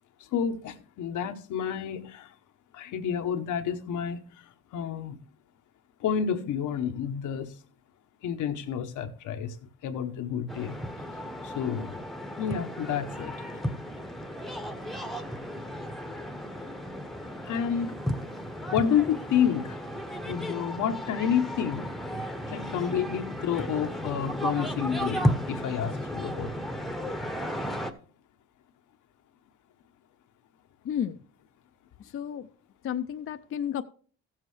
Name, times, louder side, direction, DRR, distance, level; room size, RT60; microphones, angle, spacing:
voice 1, 0.2-2.3 2.7-5.2 6.0-7.5 8.2-9.6 9.8-10.8 11.4-12.0 12.4-13.3 17.4-18.0 18.7-19.8 20.3-21.9 22.5-26.5, left 8 dB, 80° left, 1.0 m, -30 dB
sound 1, 10.5-27.9, equal, ahead, 0.9 m, -34 dB
voice 2, 30.8-31.2 32.0-32.5 32.8-33.8, left 9 dB, 45° left, 0.5 m, -32 dB
15.0 x 7.4 x 3.3 m
cardioid pair, 90°, 30 cm